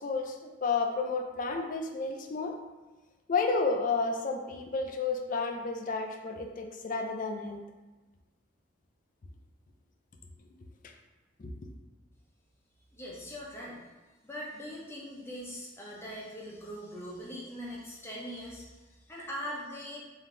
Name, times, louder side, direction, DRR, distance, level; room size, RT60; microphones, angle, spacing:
voice 1, 0.0-2.5 3.3-7.6 11.4-11.5, left 4 dB, 45° left, 3 dB, 0.4 m, -31 dB
voice 2, 12.9-13.8 14.2-20.0, equal, 15° left, -5 dB, 0.7 m, -41 dB
3.7 x 2.7 x 3.7 m, 1.2 s
head